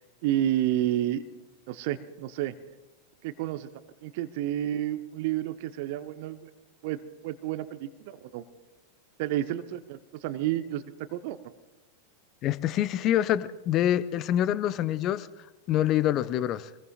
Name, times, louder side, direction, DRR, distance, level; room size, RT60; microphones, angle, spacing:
voice 1, 0.2-1.2 1.7-2.5 3.2-3.7 4.0-6.5 6.8-8.4 9.2-10.8 11.1-11.4, right 13 dB, 50° right, 11 dB, 0.9 m, -30 dB
voice 2, 12.4-15.3 15.7-16.7, left 12 dB, 35° left, 15 dB, 0.7 m, -26 dB
25.5 x 20.0 x 2.4 m, 1.0 s
figure-of-eight pair, 90°, 0 cm